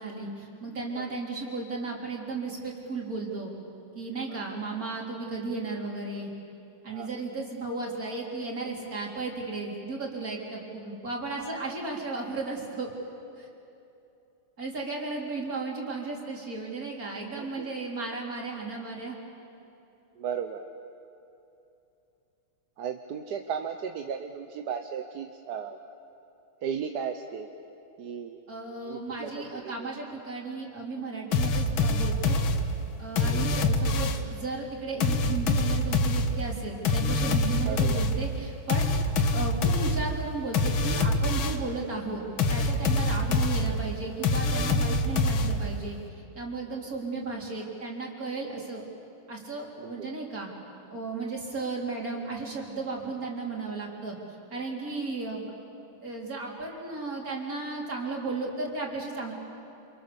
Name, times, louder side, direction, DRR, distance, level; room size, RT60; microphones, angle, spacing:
voice 1, 0.0-3.5 3.9-6.3 6.8-12.9 13.4-13.5 14.6-19.2 28.5-32.4 33.0-42.2 42.5-46.0 46.3-48.8 49.3-50.5 50.9-54.2 54.5-55.4 56.0-59.3, right 3 dB, 40° right, -2 dB, 4.3 m, -35 dB
voice 2, 20.2-20.6 22.8-25.8 26.6-27.5 28.0-28.4 28.9-29.9 33.2-33.5 37.6-38.0 49.8-50.1, right 7 dB, 60° right, 6 dB, 1.4 m, -35 dB
sound 1, 31.3-34.4 35.0-41.7 42.4-45.9, left 2 dB, 75° left, 2.0 m, -26 dB
28.5 x 27.5 x 7.0 m, 2.8 s
omnidirectional pair, 2.3 m